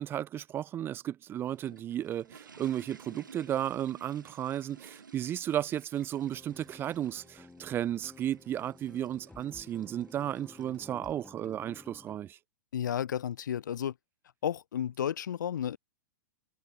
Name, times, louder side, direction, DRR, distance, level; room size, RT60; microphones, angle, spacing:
voice 1, 0.0-12.4, right 11 dB, 20° right, 0.4 m, -34 dB
sound 1, 1.2-11.5, right 5 dB, 80° right, 1.0 m, -56 dB
sound 2, 6.2-12.2, left 3 dB, 5° left, 1.2 m, -54 dB
voice 2, 12.7-13.9 14.4-15.8, left 9 dB, 70° left, 0.5 m, -32 dB
figure-of-eight pair, 105°, 10 cm